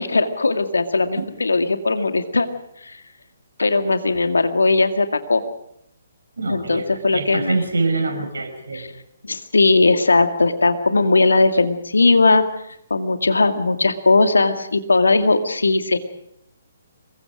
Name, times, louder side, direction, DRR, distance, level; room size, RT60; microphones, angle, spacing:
voice 1, 0.0-2.5 2.8-3.0 3.6-5.4 6.5-7.6 8.7-8.9 9.2-12.4 12.9-16.0, left 3 dB, 75° left, 7 dB, 2.1 m, -18 dB
voice 2, 6.4-8.9, right 3 dB, 70° right, 5 dB, 6.0 m, -25 dB
26.5 x 22.5 x 5.1 m, 0.76 s
figure-of-eight pair, 135°, 0 cm